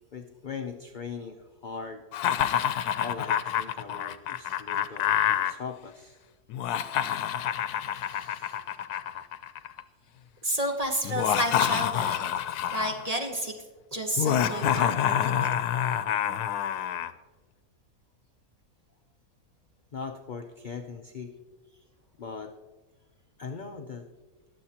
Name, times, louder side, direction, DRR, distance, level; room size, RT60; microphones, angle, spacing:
voice 1, 0.1-2.0 3.0-6.2 19.9-21.3 22.2-22.5 23.4-24.1, left 5 dB, 55° left, 4 dB, 0.5 m, -39 dB
Laughter, 2.1-5.5 6.5-9.8 11.0-13.1 14.2-17.1, left 10 dB, 90° left, 1.2 m, -27 dB
voice 2, 8.1-8.5 10.4-12.3 12.7-13.5 13.9-15.5, right 1 dB, 25° right, 2 dB, 1.1 m, -31 dB
22.0 x 7.5 x 2.9 m, 1.3 s
omnidirectional pair, 1.6 m